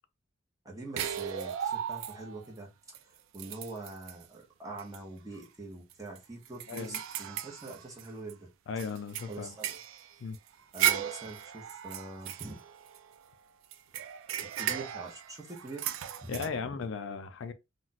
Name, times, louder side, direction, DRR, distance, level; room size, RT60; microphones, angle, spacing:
voice 1, 0.6-2.7 3.0-8.5 9.3-9.7 10.7-12.6 14.6-15.9 16.2-16.5, right 2 dB, 15° right, 0.8 m, -44 dB
sound 1, 1.0-2.5 2.9-3.0 3.3-4.2 4.8-5.0 5.4-5.5 5.9-8.3 8.8-13.2 13.7-16.5, right 10 dB, 75° right, 0.3 m, -36 dB
voice 2, 6.7-7.0 8.7-9.5 10.2-10.4 16.3-17.5, left 5 dB, 65° left, 0.4 m, -36 dB
2.4 x 2.2 x 3.9 m
head